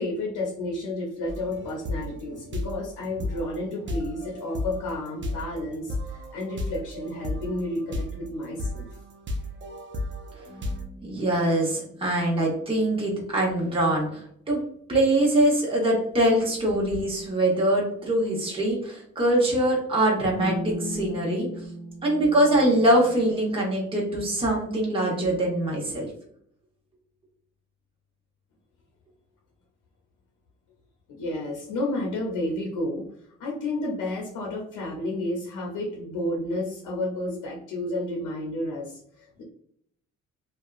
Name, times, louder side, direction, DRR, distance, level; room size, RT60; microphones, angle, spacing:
voice 1, 0.0-8.9 31.1-33.1 33.4-39.4, left 1 dB, 85° left, -2 dB, 0.8 m, -31 dB
sound 1, 1.3-10.8, left 1 dB, 40° right, 0.6 m, -34 dB
sound 2, 10.4-12.8 15.9-16.0 16.7-17.2 17.8-18.7 20.3-23.3, equal, 20° left, 1.4 m, -38 dB
voice 2, 11.0-14.6 14.9-21.5 22.0-26.1, right 1 dB, 20° right, -4 dB, 1.0 m, -23 dB
2.6 x 2.3 x 2.4 m, 0.68 s
cardioid pair, 90°, 30 cm